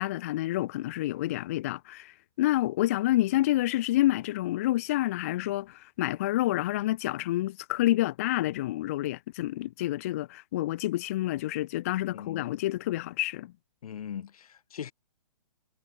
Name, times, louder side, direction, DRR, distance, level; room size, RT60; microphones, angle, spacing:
voice 1, 0.0-13.5, left 15 dB, 25° left, 0.3 m, -28 dB
voice 2, 12.1-12.5 13.8-14.9, left 9 dB, 65° left, 0.8 m, -40 dB
hypercardioid pair, 155°, 20 cm